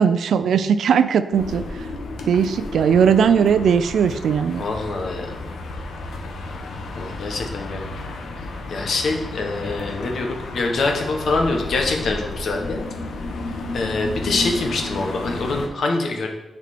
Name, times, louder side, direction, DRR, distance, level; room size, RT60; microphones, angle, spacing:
voice 1, 0.0-1.6 2.3-4.6, right 7 dB, 85° right, 12 dB, 0.4 m, -18 dB
sound 1, 1.3-15.7, left 2 dB, 90° left, 1.0 m, -32 dB
voice 2, 4.6-5.3 6.9-7.8 8.4-12.8 13.7-16.3, left 3 dB, 65° left, 2 dB, 1.3 m, -25 dB
10.5 x 4.4 x 4.2 m, 1.1 s
wide cardioid pair, 145°, 0 cm